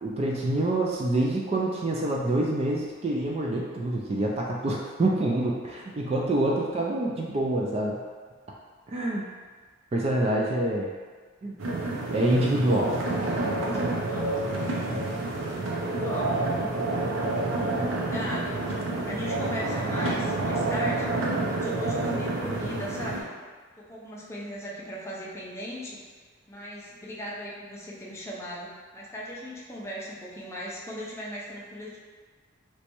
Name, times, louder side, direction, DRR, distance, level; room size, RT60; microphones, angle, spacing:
voice 1, 0.0-8.0 8.9-9.3 9.9-10.9 11.4-11.6 12.1-12.9 14.9-15.1, right 1 dB, 30° right, -2 dB, 0.3 m, -26 dB
sound 1, 11.6-23.2, right 2 dB, 85° right, 0.6 m, -29 dB
voice 2, 13.6-16.9 17.5-17.8 18.0-21.1 21.5-23.3 23.8-26.0 26.5-32.0, equal, 15° left, -5 dB, 0.6 m, -38 dB
3.3 x 3.0 x 3.0 m, 1.5 s
head